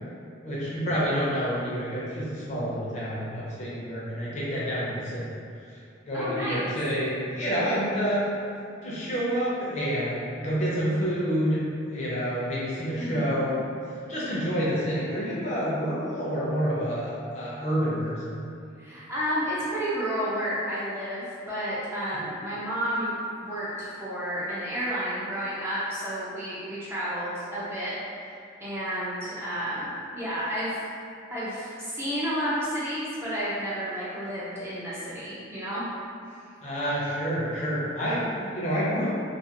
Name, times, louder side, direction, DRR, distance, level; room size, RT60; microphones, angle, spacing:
voice 1, 0.4-5.3 5.6-5.8 6.0-8.2 8.8-11.6 11.9-13.6 13.9-18.4 36.6-39.1, equal, 35° left, -8 dB, 0.6 m, -28 dB
voice 2, 6.1-6.7 13.0-13.4 18.8-23.2 23.4-27.9 28.2-30.8 31.3-35.8, equal, 10° right, -10 dB, 0.4 m, -31 dB
2.4 x 2.4 x 2.8 m, 2.4 s
head